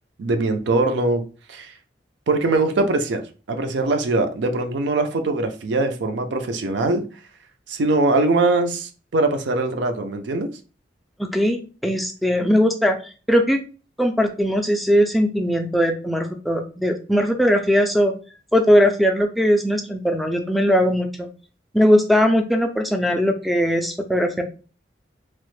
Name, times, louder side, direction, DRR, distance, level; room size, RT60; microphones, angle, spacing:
voice 1, 0.2-1.2 1.5-1.7 2.3-3.2 3.5-7.0 7.7-10.5, right 2 dB, 75° right, 0.5 m, -22 dB
voice 2, 11.2-13.0 13.3-13.6 14.0-18.1 18.5-21.3 21.7-24.4, equal, ahead, 0.3 m, -19 dB
3.0 x 2.0 x 3.1 m
head